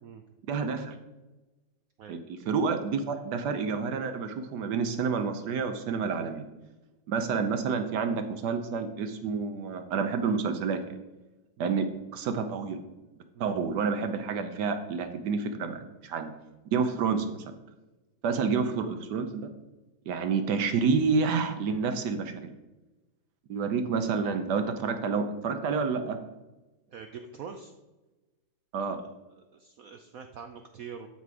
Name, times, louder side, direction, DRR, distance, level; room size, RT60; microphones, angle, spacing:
voice 1, 0.5-1.0 2.1-6.5 7.1-10.9 11.6-12.8 13.4-16.3 16.7-17.3 18.2-19.4 20.1-22.5 23.5-26.2 28.7-29.0, right 5 dB, 70° right, 8 dB, 1.1 m, -29 dB
voice 2, 26.9-27.7 28.9-29.0 29.4-31.1, right 6 dB, 85° right, 6 dB, 0.7 m, -44 dB
12.5 x 4.2 x 4.7 m, 1.1 s
omnidirectional pair, 2.2 m